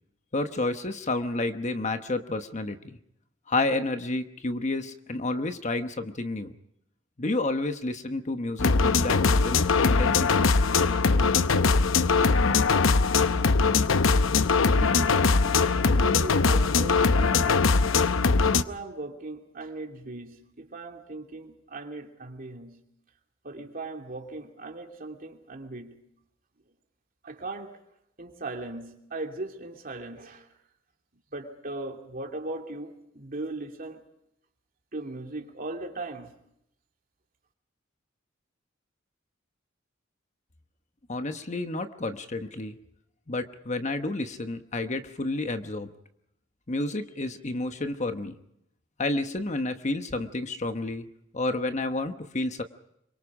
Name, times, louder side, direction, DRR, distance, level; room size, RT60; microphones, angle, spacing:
voice 1, 0.3-3.0 3.5-6.5 7.2-10.5 41.1-42.8 43.3-45.9 46.7-48.3 49.0-51.1 51.3-52.6, left 2 dB, 35° left, 8 dB, 1.1 m, -30 dB
sound 1, 8.6-18.6, left 4 dB, 85° left, 0.8 m, -21 dB
voice 2, 14.7-15.4 15.8-17.9 18.5-22.8 23.4-26.0 27.2-27.8 28.2-30.5 31.3-34.0 34.9-36.3, right 2 dB, 45° right, 3 dB, 2.8 m, -38 dB
26.5 x 24.0 x 4.9 m, 0.78 s
head